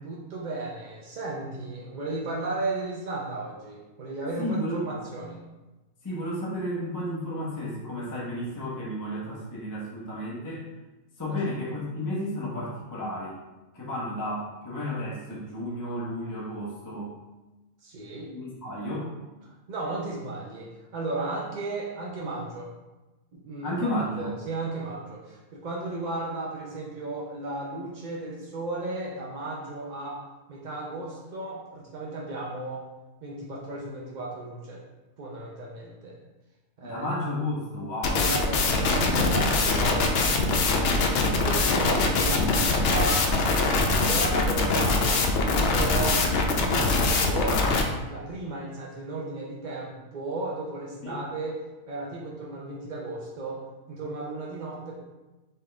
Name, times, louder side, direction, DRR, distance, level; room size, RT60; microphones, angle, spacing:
voice 1, 0.0-4.6 4.9-5.5 11.3-11.4 17.8-18.3 19.4-22.7 23.3-23.9 24.2-30.2 30.5-32.9 33.2-34.8 35.2-36.2 36.8-37.1 38.1-43.3 43.8-46.9 47.2-47.7 48.1-51.6 51.9-55.0, right 2 dB, 60° right, -4 dB, 0.5 m, -35 dB
voice 2, 4.4-4.8 6.0-10.7 11.2-13.3 13.7-17.1 18.3-19.1 23.6-24.3 36.8-38.3 41.6-41.8 51.0-51.2, equal, 15° left, -5 dB, 0.7 m, -32 dB
sound 1, 38.0-47.8, left 3 dB, 65° left, 0.6 m, -23 dB
4.2 x 3.6 x 3.2 m, 1.1 s
omnidirectional pair, 1.6 m